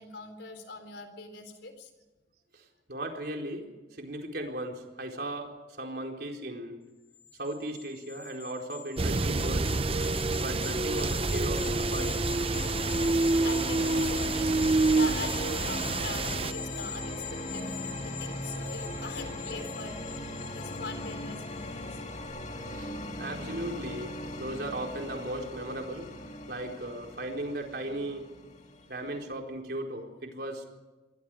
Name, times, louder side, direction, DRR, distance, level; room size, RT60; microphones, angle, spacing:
voice 1, 0.0-1.9 13.4-14.6 14.9-17.7 18.0-22.0 28.8-29.1, left 3 dB, 75° left, 8 dB, 4.1 m, -42 dB
voice 2, 2.5-6.8 7.4-9.9 10.4-12.2 17.9-19.0 22.7-26.1 26.5-28.2 28.9-30.6, right 1 dB, 55° right, 2 dB, 4.4 m, -37 dB
sound 1, 7.1-21.7 22.1-22.2, left 7 dB, 60° left, 5.1 m, -42 dB
sound 2, 9.0-16.5, right 3 dB, 30° right, 0.6 m, -27 dB
sound 3, 11.6-29.3, left 1 dB, 40° left, 2.6 m, -40 dB
28.0 x 23.0 x 5.0 m, 1.1 s
head